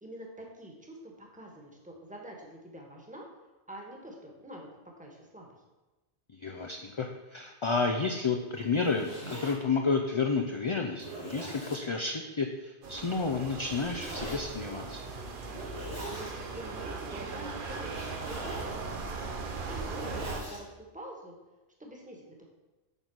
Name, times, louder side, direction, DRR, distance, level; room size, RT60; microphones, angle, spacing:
voice 1, 0.0-3.2 3.7-4.7 5.0-5.5 16.0-19.3 19.7-21.4 21.8-22.5, right 1 dB, 5° right, 0 dB, 1.3 m, -46 dB
voice 2, 6.3-15.0, left 4 dB, 40° left, 3 dB, 0.4 m, -31 dB
Zipper (clothing), 8.6-9.5 10.2-10.3 10.9-11.8 13.6-14.4 15.4-16.3 17.8-18.7 19.5-20.6, right 1 dB, 90° right, 3.5 m, -42 dB
sound 1, 12.8-20.4, right 4 dB, 50° right, 0.9 m, -38 dB
8.9 x 4.0 x 6.2 m, 1.1 s
omnidirectional pair, 1.1 m